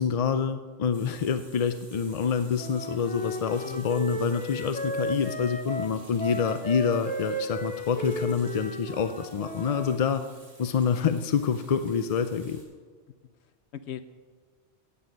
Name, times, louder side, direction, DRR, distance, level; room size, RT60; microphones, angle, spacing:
voice 1, 0.0-10.3 10.6-12.6, left 6 dB, 50° left, 10 dB, 0.4 m, -27 dB
Water tap faucet / Sink (filling or washing), 0.9-12.6, right 1 dB, 65° right, 4.5 m, -54 dB
Wind instrument woodwind instrument, 2.6-10.0, equal, 10° left, 0.7 m, -35 dB
voice 2, 13.4-14.0, left 10 dB, 75° left, 12 dB, 0.8 m, -41 dB
13.5 x 9.4 x 5.3 m, 1.5 s
omnidirectional pair, 1.1 m